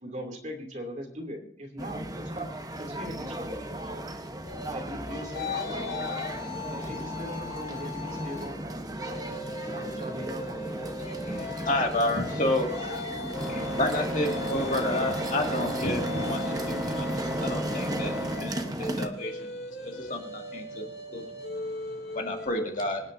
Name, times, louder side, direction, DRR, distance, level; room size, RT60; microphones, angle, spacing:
voice 1, 0.0-2.5 2.8-4.0 4.7-6.2 6.7-10.6, equal, 40° right, 2 dB, 2.6 m, -40 dB
sound 1, 1.8-19.1, right 1 dB, 20° right, 1.0 m, -35 dB
sound 2, 4.5-8.5 8.9-22.5, left 4 dB, 60° left, 2.3 m, -39 dB
voice 2, 11.0-13.1 13.5-19.5 19.8-21.2 22.1-23.0, left 1 dB, 45° left, 1 dB, 2.1 m, -31 dB
sound 3, 13.3-18.3, right 1 dB, ahead, 4.7 m, -35 dB
voice 3, 18.6-22.2, equal, 25° left, -1 dB, 3.0 m, -56 dB
25.5 x 9.7 x 2.7 m, 0.69 s
head